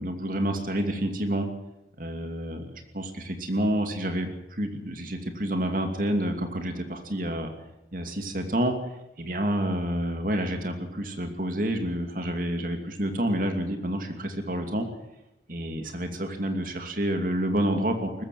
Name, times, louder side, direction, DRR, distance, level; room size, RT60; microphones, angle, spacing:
voice 1, 0.0-1.5 2.0-7.5 7.9-8.7 9.2-14.9 15.5-18.2, right 1 dB, 50° right, 5 dB, 2.7 m, -29 dB
19.5 x 15.0 x 9.2 m, 0.89 s
head